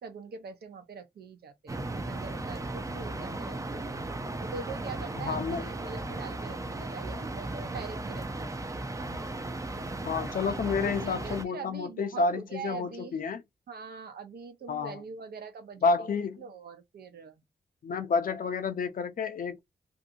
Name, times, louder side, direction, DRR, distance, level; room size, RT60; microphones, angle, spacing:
voice 1, 0.0-4.0 4.4-8.7 10.6-13.2 13.7-17.4, right 5 dB, 80° right, 0.8 m, -43 dB
sound 1, 1.7-11.5, right 2 dB, 20° right, 0.5 m, -36 dB
voice 2, 5.2-5.7 10.0-13.4 14.7-15.0 15.8-16.4 17.8-19.6, left 4 dB, 60° left, 0.6 m, -30 dB
2.7 x 2.6 x 2.6 m
wide cardioid pair, 120°, 16 cm